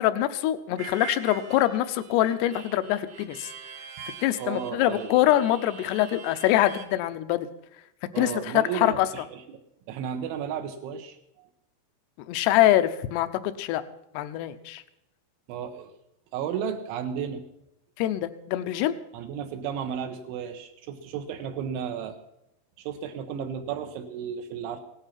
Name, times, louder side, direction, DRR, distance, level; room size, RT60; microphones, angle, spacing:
voice 1, 0.0-3.5 4.2-7.5 8.2-9.1 12.3-13.8 14.1-14.8 18.0-18.9, left 13 dB, 80° left, 11 dB, 2.5 m, -24 dB
Harmonica, 0.8-6.9, right 8 dB, 65° right, 2.0 m, -44 dB
voice 2, 4.4-5.4 8.1-9.6 9.9-11.5 15.5-15.9 16.3-17.4 19.1-22.2 22.8-24.8, right 8 dB, 80° right, 4 dB, 3.4 m, -33 dB
17.5 x 11.5 x 5.8 m, 0.83 s
omnidirectional pair, 5.5 m